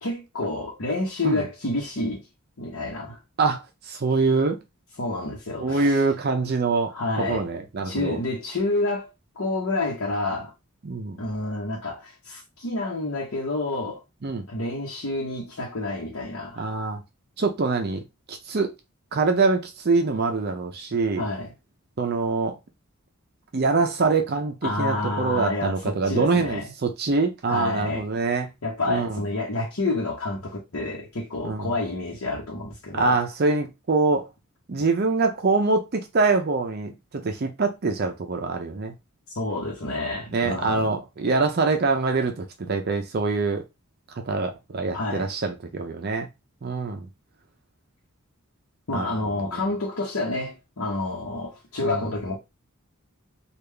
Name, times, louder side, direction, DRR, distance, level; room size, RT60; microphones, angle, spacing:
voice 1, 0.0-2.2 2.6-3.2 5.0-6.0 6.9-7.5 7.8-9.1 9.4-10.5 11.2-14.0 14.5-16.7 21.2-21.5 24.6-26.7 27.5-28.0 28.6-33.2 39.3-40.9 44.9-45.3 48.9-52.4, left 2 dB, 70° left, 0.9 m, -29 dB
voice 2, 3.4-4.6 5.6-8.2 10.8-11.2 14.2-14.4 16.6-17.0 17.4-18.0 18.3-18.7 19.1-21.3 22.0-22.6 23.5-28.5 28.9-29.2 31.4-31.7 32.9-34.3 34.7-38.9 40.3-43.6 44.2-46.3 46.6-47.1 48.9-49.1 51.8-52.0, right 3 dB, 45° right, 0.5 m, -24 dB
3.6 x 2.4 x 3.3 m
head